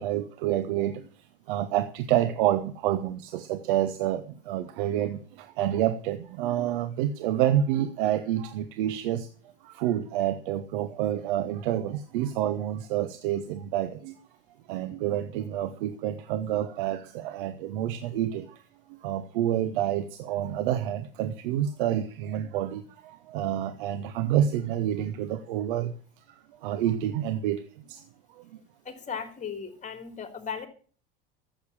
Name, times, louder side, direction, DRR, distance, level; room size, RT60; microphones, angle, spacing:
voice 1, 0.0-9.3 9.6-14.2 14.7-18.6 18.9-26.0 26.3-28.0 28.3-28.6, right 11 dB, 60° right, 10 dB, 1.2 m, -28 dB
voice 2, 28.9-30.7, left 7 dB, 25° left, 6 dB, 3.5 m, -36 dB
14.0 x 8.0 x 8.8 m, 0.43 s
figure-of-eight pair, 75°, 29 cm